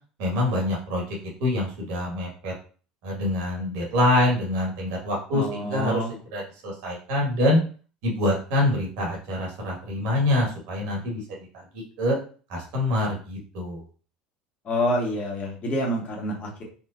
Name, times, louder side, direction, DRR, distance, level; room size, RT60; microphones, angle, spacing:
voice 1, 0.2-2.5 3.0-6.0 6.3-7.6 8.0-11.2 11.5-11.6 12.0-12.2 12.5-13.8, left 1 dB, 55° right, -2 dB, 1.9 m, -25 dB
voice 2, 5.3-6.1 14.7-16.6, equal, 35° left, -1 dB, 1.9 m, -27 dB
4.3 x 4.2 x 2.7 m, 0.39 s
figure-of-eight pair, 65°, 4 cm